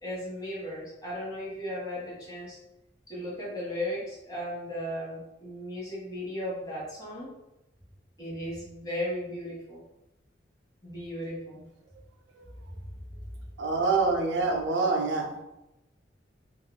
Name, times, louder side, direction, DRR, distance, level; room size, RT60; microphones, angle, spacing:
voice 1, 0.0-2.6 3.1-7.3 8.2-9.8 10.8-11.6 12.7-12.8, left 1 dB, 20° left, -7 dB, 1.3 m, -36 dB
voice 2, 13.6-15.3, right 3 dB, 80° right, 1 dB, 0.5 m, -25 dB
4.1 x 2.4 x 2.2 m, 0.91 s
head